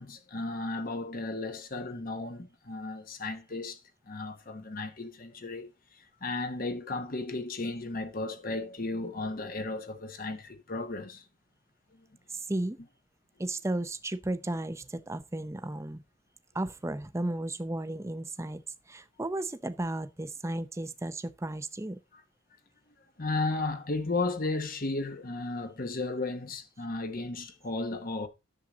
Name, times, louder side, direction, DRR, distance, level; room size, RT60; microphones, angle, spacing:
voice 1, 0.0-3.8 4.1-11.2 11.9-12.0 23.2-28.3, left 2 dB, 45° left, 1.1 m, -34 dB
voice 2, 12.3-12.8 13.4-16.0 16.5-22.0, right 1 dB, 15° right, 0.6 m, -34 dB
10.5 x 7.4 x 3.8 m
head